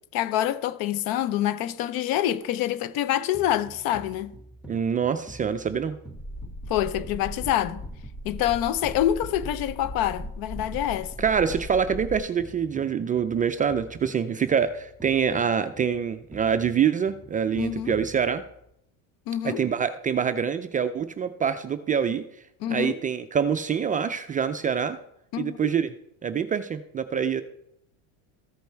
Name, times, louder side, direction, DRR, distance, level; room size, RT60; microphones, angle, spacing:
voice 1, 0.1-4.3 6.7-7.8 8.2-11.1 17.6-17.9 19.3-19.6 22.6-23.0 25.3-25.6, left 12 dB, 60° left, 0.8 m, -26 dB
sound 1, 3.3-18.7, right 1 dB, ahead, 1.1 m, -47 dB
voice 2, 4.7-6.0 11.2-18.4 19.4-22.2 22.7-25.0 25.4-25.9 26.2-27.4, right 7 dB, 20° right, 0.3 m, -25 dB
sound 2, 6.1-12.2, left 1 dB, 40° left, 3.9 m, -38 dB
14.0 x 5.3 x 4.5 m
supercardioid pair, 125°, 40 cm